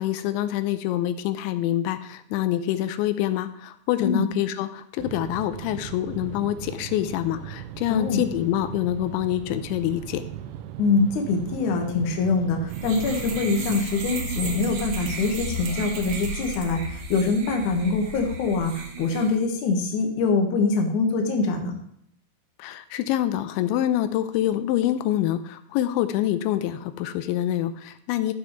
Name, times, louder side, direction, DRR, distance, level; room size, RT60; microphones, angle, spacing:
voice 1, 0.0-10.2 22.6-28.3, left 12 dB, 80° left, 11 dB, 2.8 m, -26 dB
sound 1, 5.0-13.8, right 11 dB, 85° right, 3.1 m, -38 dB
voice 2, 7.9-8.2 10.8-21.7, left 4 dB, 65° left, 2 dB, 2.0 m, -24 dB
sound 2, 12.7-19.4, right 3 dB, 60° right, 2.5 m, -33 dB
13.5 x 5.7 x 4.5 m, 0.72 s
omnidirectional pair, 5.6 m